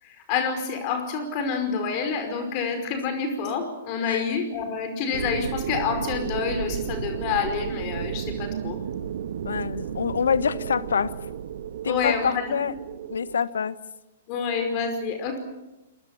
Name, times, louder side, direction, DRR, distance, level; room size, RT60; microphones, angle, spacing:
voice 1, 0.0-8.8 9.5-9.6 11.8-12.5 14.3-15.4, left 6 dB, 40° left, 7 dB, 5.1 m, -28 dB
sound 1, 5.1-13.4, right 8 dB, 65° right, 1.3 m, -33 dB
voice 2, 9.4-11.1 11.8-12.7 13.1-13.8, left 6 dB, 75° left, 16 dB, 1.2 m, -26 dB
26.5 x 21.5 x 7.3 m, 0.99 s
figure-of-eight pair, 115°, 0 cm